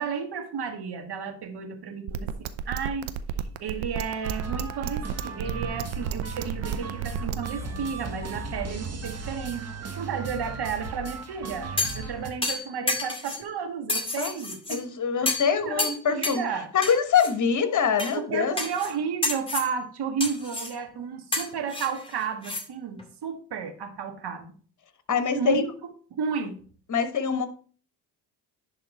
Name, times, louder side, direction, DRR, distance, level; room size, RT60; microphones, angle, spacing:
voice 1, 0.0-2.3 2.6-3.1 3.6-9.6 10.0-14.8 15.5-16.7 18.1-24.5 25.3-25.7 26.2-26.5, right 6 dB, 55° right, 1.6 m, -32 dB
sound 1, 2.1-7.5, right 9 dB, 75° right, 0.8 m, -31 dB
sound 2, 4.2-12.3, right 4 dB, 30° right, 1.4 m, -36 dB
sound 3, 11.8-12.1 12.4-13.4 13.9-14.8 15.3-15.5 15.8-16.4 16.8-17.3 18.0-18.1 18.6-18.9 19.2-19.7 20.2-20.7 21.3-22.6 23.0-23.1, left 3 dB, 10° left, 1.9 m, -30 dB
voice 2, 14.7-16.4 16.7-18.6 25.1-25.6 26.9-27.5, left 6 dB, 40° left, 1.4 m, -24 dB
10.5 x 3.7 x 4.2 m
hypercardioid pair, 60°, 48 cm